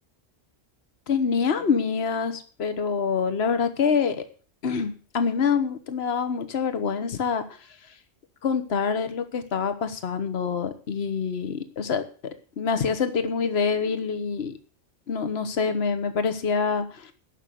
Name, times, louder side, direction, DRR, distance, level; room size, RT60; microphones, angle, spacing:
voice 1, 1.1-4.2 4.6-7.6 8.4-12.0 12.6-14.5 15.1-17.1, left 5 dB, 55° left, 10 dB, 1.4 m, -26 dB
11.0 x 6.5 x 9.2 m, 0.40 s
omnidirectional pair, 1.3 m